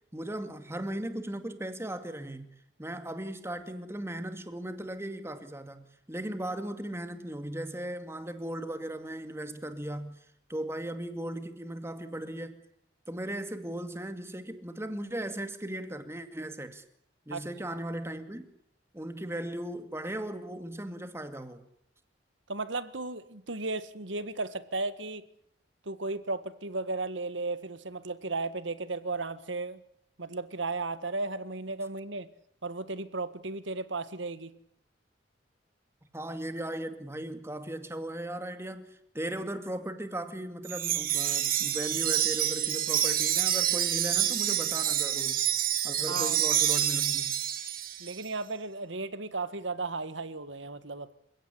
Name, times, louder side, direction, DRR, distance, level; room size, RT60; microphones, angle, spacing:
voice 1, 0.1-2.5 2.8-10.2 10.5-12.6 13.1-16.8 17.3-18.5 18.9-21.6 36.1-38.9 39.1-45.4 45.8-47.4, right 1 dB, 15° right, 2.3 m, -37 dB
voice 2, 22.5-25.2 25.8-29.8 30.2-32.3 32.6-34.5 46.1-46.4 48.0-51.2, right 3 dB, 80° right, 1.7 m, -35 dB
Wind chime, 40.7-48.2, right 11 dB, 50° right, 1.7 m, -28 dB
28.0 x 17.0 x 10.0 m
head